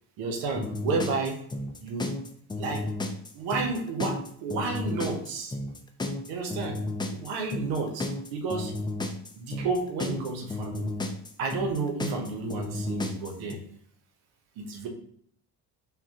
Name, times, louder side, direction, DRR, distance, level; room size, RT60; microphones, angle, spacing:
voice 1, 0.2-1.4 1.8-2.1 2.6-2.9 3.3-5.6 6.3-6.8 7.1-8.7 9.4-10.9 11.4-13.6 14.6-14.9, right 4 dB, 80° right, 3 dB, 0.9 m, -31 dB
sound 1, 0.5-13.5, left 2 dB, 10° left, 0.4 m, -33 dB
5.7 x 2.2 x 2.8 m, 0.65 s
supercardioid pair, 70°, 45 cm